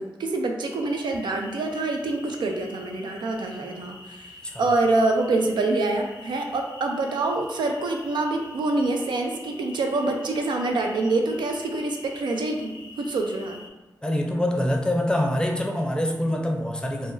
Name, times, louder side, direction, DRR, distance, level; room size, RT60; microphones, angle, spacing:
voice 1, 0.0-4.3 4.6-13.6, right 2 dB, 80° right, 3 dB, 0.4 m, -26 dB
sound 1, 0.6-13.7, left 3 dB, 70° left, 0.5 m, -46 dB
voice 2, 14.0-17.1, left 1 dB, 10° left, 1 dB, 0.5 m, -25 dB
2.5 x 2.0 x 3.7 m, 1.2 s
cardioid pair, 45°, 8 cm